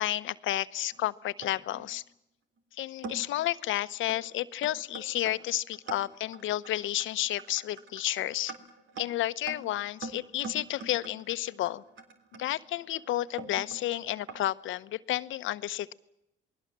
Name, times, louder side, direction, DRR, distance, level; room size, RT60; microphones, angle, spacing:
voice 1, 0.0-2.0 2.7-8.5 9.0-11.8 12.4-15.9, left 14 dB, 80° left, 14 dB, 1.0 m, -31 dB
sound 1, 0.9-1.9 2.6-2.7 3.0-3.4 4.1-4.3 4.6-14.4, right 3 dB, 75° right, 3.6 m, -44 dB
28.0 x 20.5 x 7.5 m, 0.83 s
cardioid pair, 90°, 20 cm